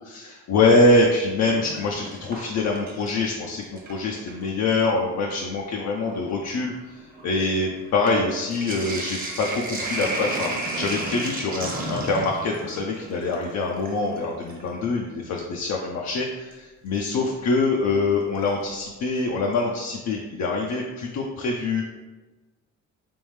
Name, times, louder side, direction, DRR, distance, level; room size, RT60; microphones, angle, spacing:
voice 1, 0.0-21.9, left 3 dB, 65° left, 0 dB, 0.5 m, -24 dB
Sink (filling or washing), 1.3-3.3 3.6-4.4 5.2-5.3 5.6-14.7 16.5-16.6 18.4-18.9 19.2-19.3 19.5-19.6, right 2 dB, 30° right, 0.9 m, -34 dB
3.5 x 3.1 x 3.1 m, 1.2 s
cardioid pair, 90°, 30 cm